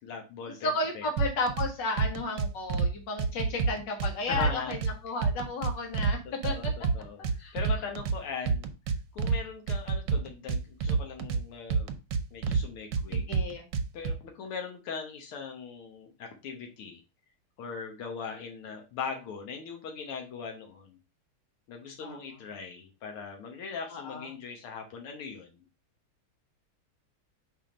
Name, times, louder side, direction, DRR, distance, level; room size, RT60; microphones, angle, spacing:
voice 1, 0.0-1.1 4.3-4.8 6.3-6.7 6.9-8.7 9.1-11.9 12.3-13.4 13.9-17.0 17.6-21.0 21.7-25.6, left 6 dB, 85° left, 3 dB, 1.9 m, -40 dB
voice 2, 0.6-6.5 7.4-7.6 13.1-13.7 22.0-22.1 23.9-24.3, left 2 dB, 55° left, 2 dB, 2.1 m, -33 dB
sound 1, 1.2-1.7 2.0-2.9 3.2-4.9 5.2-6.1 6.4-8.2 8.5-9.4 9.7-11.4 11.7-12.6 12.9-14.1, right 5 dB, 70° right, 1.3 m, -27 dB
5.4 x 3.6 x 4.9 m, 0.29 s
omnidirectional pair, 2.3 m